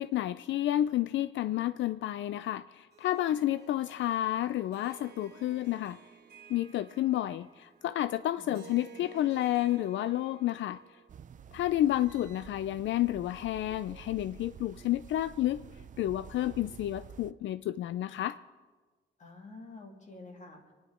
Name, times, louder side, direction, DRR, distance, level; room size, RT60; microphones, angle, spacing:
voice 1, 0.0-6.0 6.5-10.8 11.5-15.6 16.0-18.4, left 13 dB, 85° left, 14 dB, 0.4 m, -30 dB
Harp, 2.9-11.3, right 7 dB, 60° right, 1.4 m, -54 dB
voice 2, 8.4-9.0 19.2-20.7, left 3 dB, 40° left, 2 dB, 2.4 m, -49 dB
sound 1, 11.1-17.3, right 8 dB, 45° right, 0.5 m, -50 dB
26.0 x 9.8 x 4.9 m, 1.3 s
wide cardioid pair, 160°, 19 cm